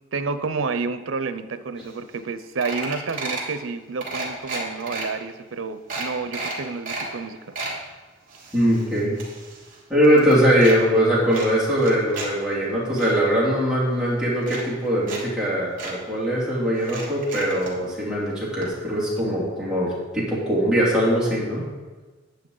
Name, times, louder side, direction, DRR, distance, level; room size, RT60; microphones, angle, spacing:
voice 1, 0.1-7.4, right 4 dB, 90° right, 11 dB, 0.7 m, -30 dB
sound 1, 1.9-2.0 2.2-2.3 2.6-3.5 4.0-5.0 5.5-5.6 5.9-7.1 7.3-7.8 8.3-9.8 10.0-10.8 11.3-12.3 12.6-13.1 13.9-14.0 14.4-15.2 15.4-15.5 15.8-15.9 16.8-17.7 18.6-18.7 19.0-19.1, right 3 dB, 40° right, 3.0 m, -33 dB
voice 2, 8.5-9.2 9.9-21.6, equal, 5° right, -8 dB, 3.0 m, -21 dB
10.0 x 9.7 x 4.0 m, 1.3 s
head